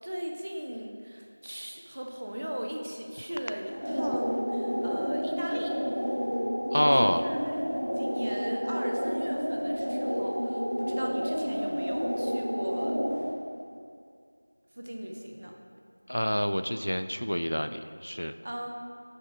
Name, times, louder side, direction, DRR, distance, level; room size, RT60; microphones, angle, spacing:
voice 1, 0.0-5.8 6.8-7.6 8.0-13.0 14.7-15.6 18.4-18.7, equal, 20° right, 1 dB, 0.3 m, -38 dB
sound 1, 3.7-13.3, equal, 30° left, 1.7 m, -30 dB
voice 2, 6.6-7.3 16.1-18.3, equal, 75° left, 10 dB, 0.3 m, -27 dB
5.8 x 5.4 x 4.6 m, 2.3 s
figure-of-eight pair, 180°, 0 cm